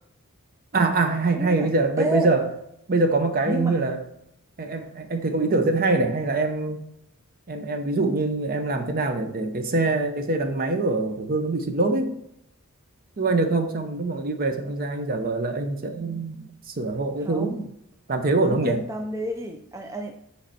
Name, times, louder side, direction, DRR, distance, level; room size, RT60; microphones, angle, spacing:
voice 1, 0.7-2.5 2.9-4.0 4.6-6.8 7.5-12.1 13.2-17.6 18.1-18.8, right 2 dB, 40° right, 7 dB, 0.7 m, -24 dB
voice 2, 1.4-1.7 2.0-2.3 3.5-3.8 17.2-17.7 18.4-20.1, right 1 dB, 15° right, 2 dB, 0.3 m, -30 dB
7.7 x 3.3 x 4.2 m, 0.79 s
head